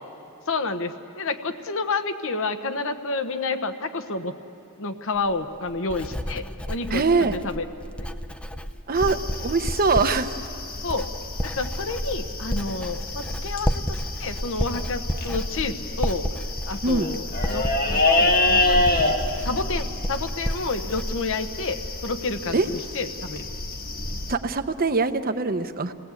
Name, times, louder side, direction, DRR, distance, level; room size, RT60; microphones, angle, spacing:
voice 1, 0.5-4.3 4.8-7.7 10.8-11.1 11.4-16.3 16.7-23.5, left 3 dB, 65° left, 9 dB, 1.1 m, -30 dB
Writing, 5.2-22.2 22.5-23.0, equal, 5° left, 0.6 m, -32 dB
voice 2, 6.9-7.4 8.9-10.3 16.8-17.1 22.5-22.7 24.3-25.9, right 3 dB, 45° right, 9 dB, 0.9 m, -23 dB
sound 1, 8.9-24.3, left 2 dB, 45° left, 1.6 m, -28 dB
28.0 x 18.5 x 8.3 m, 2.8 s
head